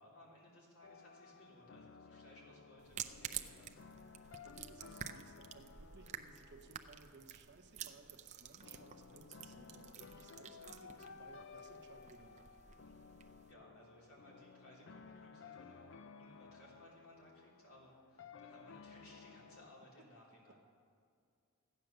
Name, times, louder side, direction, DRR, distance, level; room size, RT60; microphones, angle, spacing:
voice 1, 0.0-3.8 13.5-20.5, left 1 dB, 75° left, -4 dB, 3.4 m, -61 dB
sound 1, 0.8-19.7, left 5 dB, 60° left, 0.5 m, -57 dB
sound 2, 2.8-13.5, right 9 dB, 30° right, 0.5 m, -50 dB
voice 2, 4.2-12.6 20.0-20.1 20.5-20.6, right 3 dB, 55° right, 6 dB, 0.9 m, -61 dB
14.0 x 9.2 x 6.7 m, 2.3 s
head